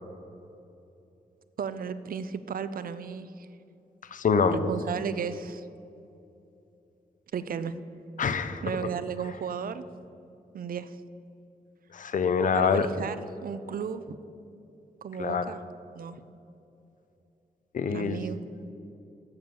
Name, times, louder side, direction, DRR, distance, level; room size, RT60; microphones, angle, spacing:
voice 1, 1.6-3.5 4.5-5.6 7.3-7.8 8.6-9.9 10.5-10.9 12.5-14.2 15.0-15.6 16.0-16.2 17.9-18.4, right 7 dB, 65° right, 13 dB, 0.5 m, -34 dB
voice 2, 4.1-4.7 8.2-8.9 11.9-12.9 15.2-15.5 17.7-18.2, left 5 dB, 55° left, 11 dB, 0.6 m, -25 dB
7.9 x 7.3 x 7.0 m, 2.7 s
wide cardioid pair, 135°, 16 cm